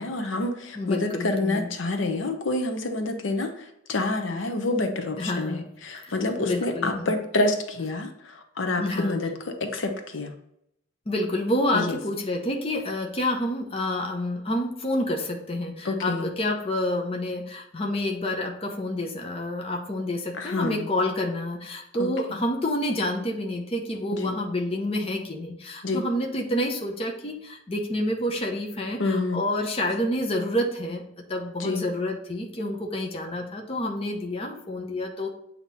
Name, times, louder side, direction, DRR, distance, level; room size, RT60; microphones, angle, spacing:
voice 1, 0.0-10.3 11.7-12.0 15.8-16.3 20.4-20.9 22.0-22.1 24.1-24.4 25.8-26.0 29.0-29.4 31.6-31.9, left 2 dB, 80° left, 5 dB, 0.8 m, -28 dB
voice 2, 0.8-1.7 5.2-5.6 5.9-7.1 8.8-9.2 11.1-35.3, left 1 dB, 30° left, 2 dB, 0.8 m, -28 dB
8.1 x 2.9 x 4.1 m, 0.76 s
head